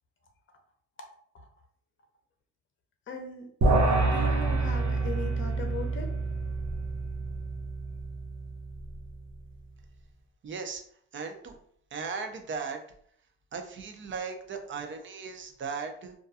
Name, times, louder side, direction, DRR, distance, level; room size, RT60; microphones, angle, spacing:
voice 1, 3.1-3.5 4.0-6.1, left 3 dB, 40° left, 4 dB, 0.7 m, -38 dB
sound 1, 3.6-9.1, right 2 dB, 65° right, 0.8 m, -28 dB
voice 2, 10.4-10.8 11.1-11.6 11.9-12.8 13.5-16.1, right 5 dB, 40° right, 5 dB, 0.5 m, -37 dB
2.3 x 2.2 x 2.6 m, 0.62 s
cardioid pair, 90°, 30 cm